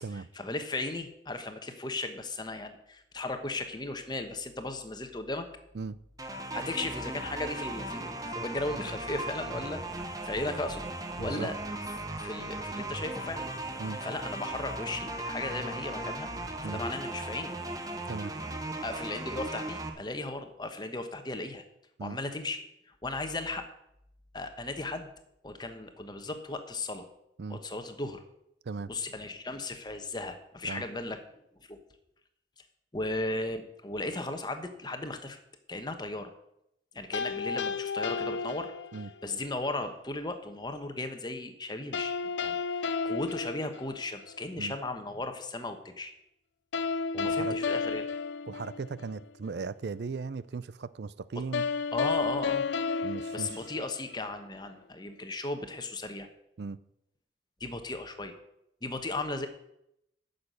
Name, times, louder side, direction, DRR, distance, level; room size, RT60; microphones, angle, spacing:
voice 1, 0.3-5.5 6.5-10.8 11.2-11.5 12.2-13.5 14.0-16.3 16.6-17.5 18.8-21.6 22.0-23.7 24.3-25.1 25.4-27.0 27.5-28.2 28.9-31.2 31.7-31.8 32.9-35.4 35.7-36.3 36.9-38.7 39.2-42.1 42.4-46.1 47.1-48.1 51.9-52.6 53.3-56.3 57.6-58.3 58.8-59.5, left 2 dB, 25° left, 7 dB, 1.1 m, -36 dB
sound 1, 6.2-19.9, right 2 dB, 20° right, 1.1 m, -37 dB
voice 2, 11.2-11.5 13.8-14.0 16.6-16.8 18.1-18.3 22.0-22.2 27.4-27.6 28.7-28.9 30.6-30.8 38.9-39.1 44.6-44.7 47.1-47.6 48.5-51.7 53.0-53.6 56.6-56.8, right 4 dB, 65° right, 17 dB, 0.4 m, -37 dB
sound 2, 37.1-39.3 41.9-44.4 46.7-49.2 51.5-54.3, left 5 dB, 85° left, 0.5 m, -32 dB
9.6 x 6.7 x 8.0 m, 0.79 s
head